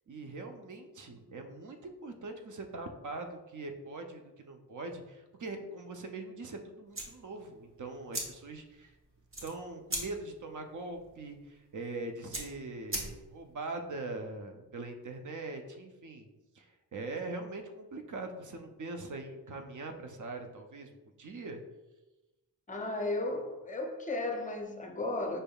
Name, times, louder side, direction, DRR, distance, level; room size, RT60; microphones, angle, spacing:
voice 1, 0.1-9.0 9.4-16.3 16.5-20.9 21.2-21.6, right 2 dB, 50° right, 0.5 m, -42 dB
sound 1, 6.9-13.5, right 1 dB, 35° right, 0.9 m, -42 dB
voice 2, 22.7-25.4, left 2 dB, 20° left, 0.5 m, -34 dB
5.3 x 3.4 x 2.3 m
wide cardioid pair, 145°, 39 cm